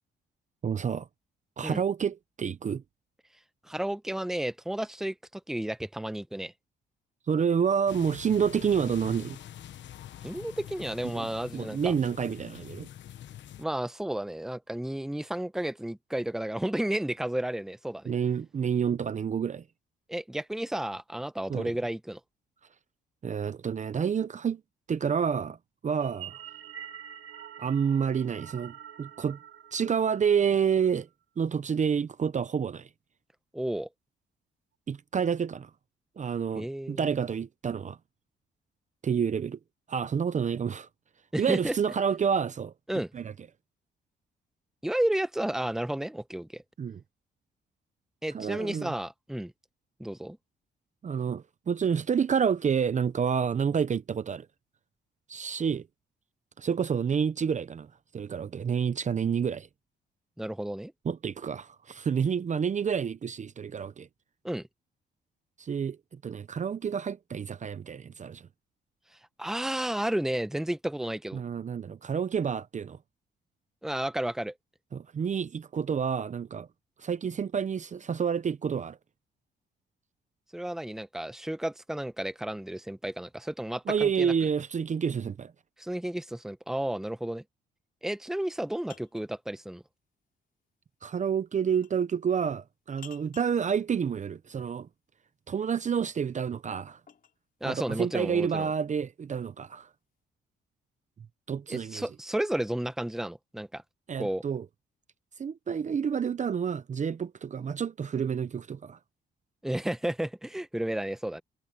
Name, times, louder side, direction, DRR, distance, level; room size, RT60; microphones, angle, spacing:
voice 1, 0.6-1.1 1.6-2.8 7.3-9.4 11.0-11.3 11.5-12.9 18.0-19.6 21.5-21.7 23.2-24.6 24.9-25.6 25.8-26.4 27.6-29.4 29.7-31.1 31.4-32.9 34.9-35.7 36.2-38.0 39.0-39.6 39.9-40.9 41.4-42.7 43.1-43.3 46.8-47.0 48.3-48.9 51.0-54.5 55.3-55.8 56.6-59.7 61.0-64.1 65.6-68.5 71.3-73.0 74.9-76.7 77.0-79.0 83.9-85.5 91.0-94.9 95.5-97.0 97.6-99.9 101.5-102.0 104.1-104.7 105.4-109.0, right 7 dB, 35° right, 0.7 m, -29 dB
voice 2, 3.7-6.5 10.2-11.9 13.6-18.1 20.1-22.2 33.5-33.9 36.6-37.0 41.3-41.7 42.9-43.1 44.8-46.6 48.2-49.5 50.0-50.4 60.4-60.9 64.4-64.7 69.4-71.4 73.8-74.5 80.5-84.3 85.8-87.4 88.0-89.8 97.6-98.7 101.7-103.8 104.2-104.4 109.6-111.4, right 1 dB, ahead, 0.9 m, -32 dB
sound 1, 7.9-13.6, left 11 dB, 65° left, 1.2 m, -45 dB
sound 2, 26.0-30.6, right 9 dB, 75° right, 3.3 m, -46 dB
sound 3, 88.5-89.3 91.7-92.1 93.0-93.6 95.9-97.4, left 7 dB, 45° left, 5.8 m, -53 dB
cardioid pair, 90°, 20 cm